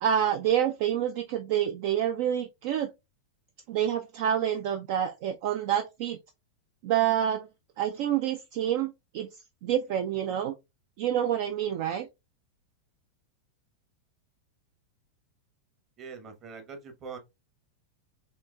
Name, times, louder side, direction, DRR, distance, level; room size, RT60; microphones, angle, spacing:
voice 1, 0.0-2.9 3.7-6.2 6.8-7.5 7.8-9.3 9.6-10.5 11.0-12.1, right 10 dB, 50° right, 0.4 m, -27 dB
voice 2, 16.0-17.2, right 5 dB, 30° right, 1.0 m, -43 dB
4.3 x 3.0 x 2.3 m
figure-of-eight pair, 90°, 0 cm